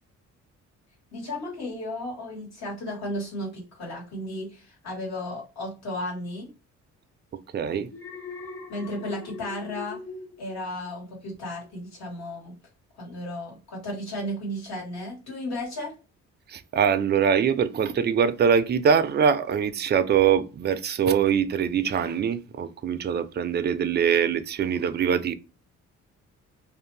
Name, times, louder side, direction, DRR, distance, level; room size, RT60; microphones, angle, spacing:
voice 1, 1.1-6.5 8.7-10.0 10.4-12.5 13.0-15.9, left 1 dB, 60° left, 1.6 m, -34 dB
voice 2, 7.5-7.9 16.5-25.3, right 7 dB, 35° right, 0.4 m, -23 dB
Alarm, 7.9-11.2 11.6-12.0, left 4 dB, 10° left, 0.8 m, -41 dB
2.5 x 2.1 x 3.2 m
cardioid pair, 90°, 30 cm